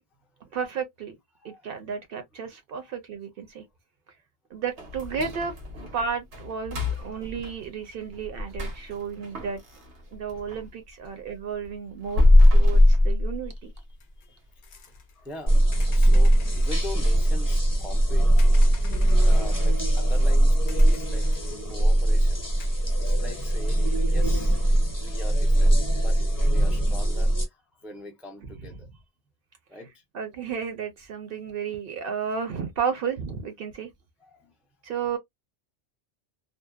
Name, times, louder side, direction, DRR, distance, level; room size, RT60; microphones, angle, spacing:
voice 1, 0.5-1.2 1.4-3.6 4.5-5.5 5.9-9.6 10.1-12.2 12.5-13.7 30.1-33.9 34.8-35.2, right 6 dB, 60° right, 0.7 m, -32 dB
voice 2, 1.4-1.8 2.8-2.9 4.5-4.6 7.0-7.1 11.1-11.2 14.2-14.4 14.7-18.7 19.0-21.3 21.6-24.6 25.0-28.9 29.7-30.0 34.2-34.5, left 1 dB, ahead, 0.4 m, -43 dB
sound 1, 4.8-10.7 11.1-13.9 14.3-14.4 14.9-15.0 15.5-15.8 16.1-16.2 16.8-16.9, left 1 dB, 85° right, 1.2 m, -22 dB
sound 2, 14.0-14.3 14.6-15.4 15.7-17.0 18.4-19.5 20.1-20.2 20.7-21.6 22.6-22.7, left 7 dB, 60° left, 0.6 m, -49 dB
sound 3, 15.5-27.5, right 1 dB, 20° left, 0.7 m, -21 dB
2.6 x 2.0 x 2.3 m
omnidirectional pair, 1.1 m